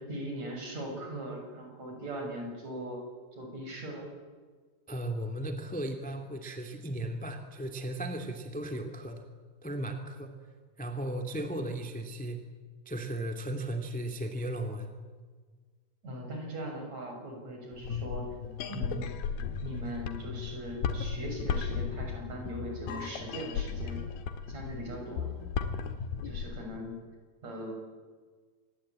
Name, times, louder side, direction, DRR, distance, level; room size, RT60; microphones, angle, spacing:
voice 1, 0.1-3.0 3.3-4.1 16.0-18.3 18.7-19.0 19.6-24.0 24.5-25.3 26.2-27.0 27.4-27.7, right 1 dB, 45° right, 2 dB, 7.8 m, -39 dB
voice 2, 4.9-9.2 9.6-10.3 10.8-12.4 12.9-14.9, right 1 dB, 5° left, 5 dB, 1.6 m, -36 dB
sound 1, 17.7-26.5, left 6 dB, 80° left, 3.5 m, -35 dB
26.5 x 21.5 x 8.9 m, 1.5 s
omnidirectional pair, 4.3 m